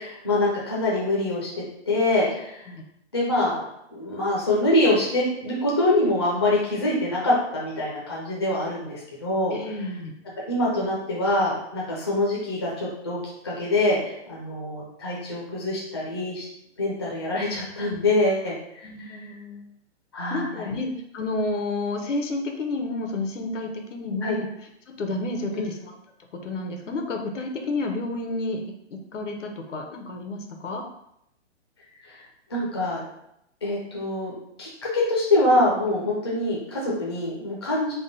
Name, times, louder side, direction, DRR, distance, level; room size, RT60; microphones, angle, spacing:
voice 1, 0.0-1.5 1.9-2.7 3.1-3.6 3.9-9.6 10.5-13.2 13.4-16.5 16.8-18.6 19.0-19.3 20.1-20.7 24.2-24.4 25.5-25.7 32.0-32.2 32.5-33.0 33.6-34.3 34.6-37.9, left 1 dB, 20° left, -5 dB, 0.4 m, -24 dB
voice 2, 9.5-10.1 18.8-19.6 20.3-24.5 24.9-25.9 26.4-28.6 28.9-30.8, left 2 dB, 90° left, 4 dB, 0.8 m, -30 dB
3.5 x 2.2 x 3.9 m, 0.78 s
hypercardioid pair, 175°, 35 cm